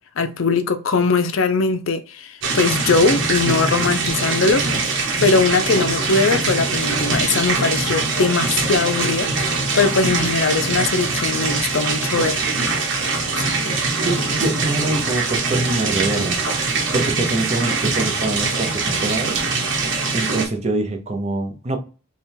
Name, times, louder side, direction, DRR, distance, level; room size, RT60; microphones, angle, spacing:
voice 1, 0.2-12.4, left 4 dB, 70° left, 0.5 m, -20 dB
sound 1, 2.4-20.4, right 3 dB, 60° right, 1.1 m, -22 dB
voice 2, 14.0-16.4 16.9-19.4 20.1-21.8, right 2 dB, 30° right, 0.7 m, -24 dB
3.5 x 2.4 x 4.3 m
head